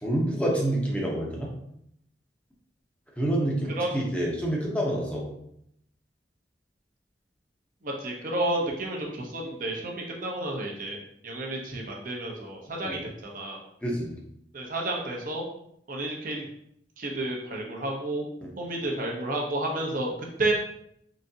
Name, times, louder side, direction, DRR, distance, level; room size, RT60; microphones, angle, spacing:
voice 1, 0.0-1.5 3.2-5.3 12.8-13.0 13.8-14.2 18.4-18.5, right 1 dB, 10° left, -3 dB, 0.8 m, -27 dB
voice 2, 7.8-13.6 14.5-15.4 15.9-16.4 17.0-18.2 18.6-20.1 20.4-20.5, right 2 dB, 50° right, -1 dB, 0.8 m, -31 dB
3.9 x 3.4 x 2.7 m, 0.72 s
head